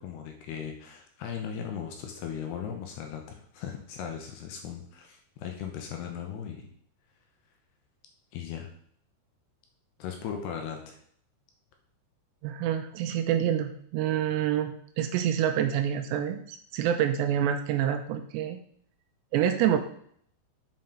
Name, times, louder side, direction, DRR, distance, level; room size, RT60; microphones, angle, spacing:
voice 1, 0.0-6.7 8.3-8.7 10.0-11.0, left 8 dB, 75° left, 3 dB, 2.7 m, -38 dB
voice 2, 12.4-18.6 19.3-19.8, right 10 dB, 85° right, 7 dB, 2.6 m, -27 dB
7.7 x 5.5 x 5.5 m, 0.63 s
omnidirectional pair, 5.5 m